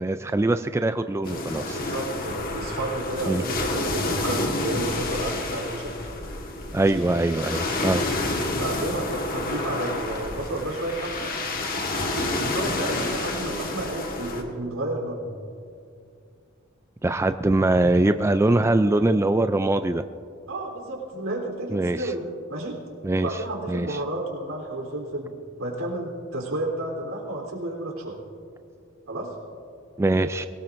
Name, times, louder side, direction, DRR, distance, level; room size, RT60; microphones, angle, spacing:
voice 1, 0.0-1.8 3.3-3.4 6.7-8.0 17.0-20.0 21.7-22.1 23.0-23.4 23.7-24.0 30.0-30.5, right 2 dB, 15° right, 9 dB, 0.3 m, -22 dB
sound 1, 1.2-14.4, left 2 dB, 45° left, 1.5 m, -29 dB
voice 2, 1.7-6.0 6.8-7.0 8.5-11.3 12.1-15.3 20.5-22.8 23.2-25.3 25.6-28.2 29.1-29.3, right 1 dB, 85° right, -1 dB, 3.5 m, -31 dB
23.5 x 17.5 x 2.6 m, 2.4 s
head